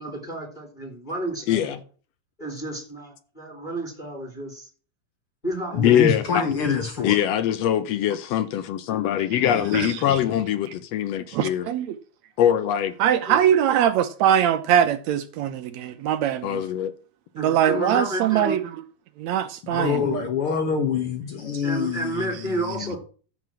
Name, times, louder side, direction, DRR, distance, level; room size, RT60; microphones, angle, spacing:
voice 1, 0.0-1.8 2.4-4.7 5.4-7.1 7.8-7.9 13.2-13.5 17.4-18.6 21.6-23.0, right 1 dB, 15° left, 2.8 m, -32 dB
voice 2, 1.5-1.8 5.8-6.5 7.0-11.7 12.4-12.9 16.4-16.9, left 10 dB, 80° left, 1.4 m, -22 dB
voice 3, 5.7-7.2 9.4-10.4 19.6-23.0, left 6 dB, 65° left, 1.4 m, -26 dB
voice 4, 11.3-12.0 13.0-16.6 17.4-18.7 19.2-20.2 22.0-22.1, right 10 dB, 75° right, 1.7 m, -22 dB
13.5 x 4.7 x 7.5 m
omnidirectional pair, 3.9 m